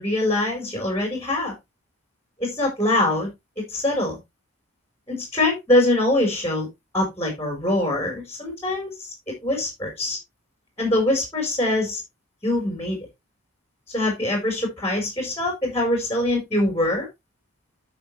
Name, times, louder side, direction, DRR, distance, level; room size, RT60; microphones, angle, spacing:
voice 1, 0.0-1.5 2.4-3.3 3.7-4.2 5.1-6.7 6.9-8.9 9.3-10.2 10.8-12.0 12.4-13.0 13.9-17.1, left 1 dB, 10° left, 1 dB, 4.7 m, -23 dB
12.0 x 5.8 x 3.3 m, 0.21 s
head